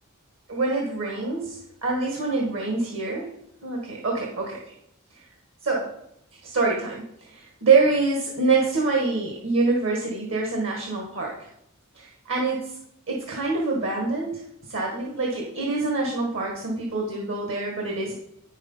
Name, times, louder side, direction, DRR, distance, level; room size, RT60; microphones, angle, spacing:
voice 1, 0.5-3.3 3.6-4.6 5.6-5.9 6.4-7.0 7.3-11.5 11.9-12.7 13.1-18.1, right 3 dB, 65° right, -1 dB, 1.6 m, -25 dB
8.7 x 6.4 x 5.5 m, 0.76 s
head